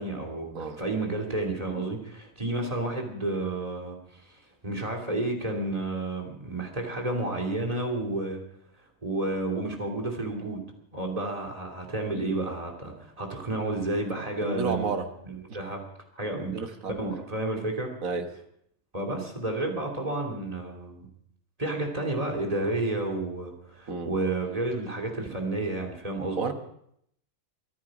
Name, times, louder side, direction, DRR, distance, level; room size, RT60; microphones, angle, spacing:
voice 1, 0.0-8.4 9.0-10.6 10.9-14.9 15.2-15.8 16.1-16.6 17.0-17.9 18.9-21.1 21.6-26.5, right 2 dB, 25° right, 0 dB, 2.9 m, -31 dB
voice 2, 14.4-15.1 15.5-15.6 16.5-17.0 18.0-18.3 23.9-24.2 26.4-26.5, right 5 dB, 75° right, 6 dB, 1.8 m, -31 dB
23.0 x 10.0 x 4.9 m, 0.72 s
omnidirectional pair, 1.4 m